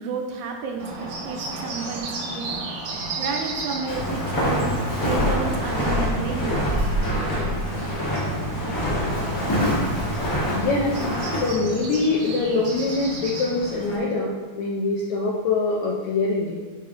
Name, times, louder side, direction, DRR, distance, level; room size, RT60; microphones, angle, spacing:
voice 1, 0.0-2.5 3.2-6.6, right 4 dB, 75° right, 2 dB, 1.8 m, -31 dB
Bird, 0.8-14.0, right 2 dB, 60° right, 2.0 m, -34 dB
Walk footsteps, 3.9-11.6, equal, 40° left, 1.3 m, -25 dB
voice 2, 10.5-11.0 11.3-16.6, left 3 dB, 75° left, -3 dB, 1.7 m, -24 dB
5.7 x 5.3 x 3.8 m, 1.3 s
omnidirectional pair, 3.9 m